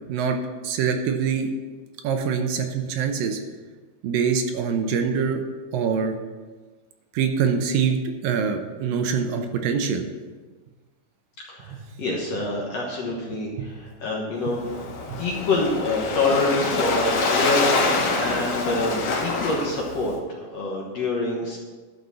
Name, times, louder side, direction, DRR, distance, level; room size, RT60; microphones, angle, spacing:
voice 1, 0.6-1.5 2.0-3.4 4.0-5.4 5.7-6.2 7.1-8.0 8.2-10.1 13.6-13.7 15.1-15.2, right 6 dB, 75° right, 5 dB, 2.4 m, -24 dB
voice 2, 11.5-14.6 15.2-21.6, left 2 dB, 60° left, -2 dB, 1.9 m, -26 dB
Waves surf, 14.5-20.2, left 3 dB, 85° left, 3.5 m, -25 dB
11.5 x 5.4 x 6.8 m, 1.3 s
omnidirectional pair, 4.3 m